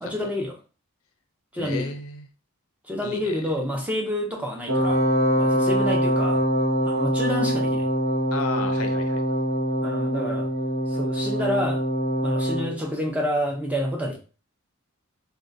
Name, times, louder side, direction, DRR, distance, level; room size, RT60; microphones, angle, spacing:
voice 1, 0.0-0.6 1.5-1.9 2.9-5.0 5.4-6.4 6.8-7.9 9.8-10.5 10.9-11.8 12.2-14.2, equal, 5° right, 0 dB, 0.5 m, -28 dB
voice 2, 1.5-2.2 3.0-3.3 8.3-9.2, left 4 dB, 70° left, 8 dB, 0.5 m, -33 dB
Wind instrument woodwind instrument, 4.7-12.7, equal, 80° right, 0.9 m, -24 dB
3.6 x 2.2 x 2.6 m, 0.35 s
head